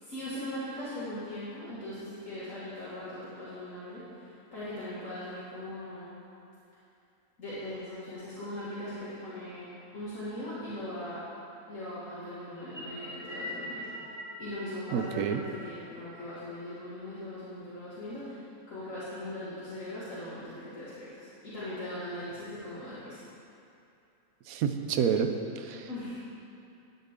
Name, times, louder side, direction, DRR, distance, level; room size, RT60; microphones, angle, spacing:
voice 1, 0.0-6.1 7.4-11.2 11.7-14.1 14.4-18.4 18.7-23.2 25.9-26.1, left 1 dB, 65° left, -12 dB, 2.3 m, -40 dB
sound 1, 12.6-17.1, left 1 dB, 15° left, 2.4 m, -43 dB
voice 2, 14.9-15.4 24.5-25.9, right 7 dB, 85° right, 7 dB, 1.1 m, -29 dB
12.5 x 8.5 x 3.7 m, 2.7 s
omnidirectional pair, 1.4 m